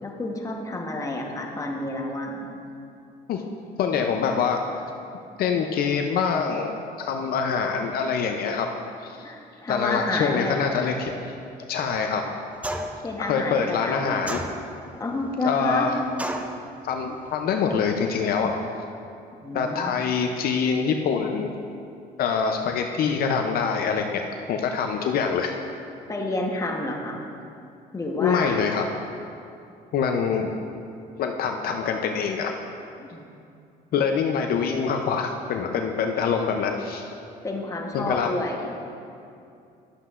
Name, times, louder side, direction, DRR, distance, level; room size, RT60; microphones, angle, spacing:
voice 1, 0.0-2.4 9.2-10.9 13.0-14.4 15.0-15.9 19.4-20.0 26.1-27.2 27.9-28.6 33.0-33.3 37.4-38.7, left 2 dB, 20° left, 1 dB, 1.0 m, -29 dB
voice 2, 3.8-4.6 5.4-8.7 9.0-9.2 9.7-11.3 11.7-12.2 13.2-14.4 15.4-16.0 16.8-18.5 19.5-21.5 22.2-24.2 24.5-25.6 28.2-28.8 29.9-30.5 31.2-32.5 33.9-37.1 37.9-38.3, left 6 dB, 65° left, 4 dB, 0.6 m, -25 dB
sound 1, 12.6-13.1 14.3-14.9 16.2-16.6, right 1 dB, 10° right, 0.5 m, -31 dB
11.5 x 7.8 x 2.5 m, 2.6 s
cardioid pair, 110°, 17 cm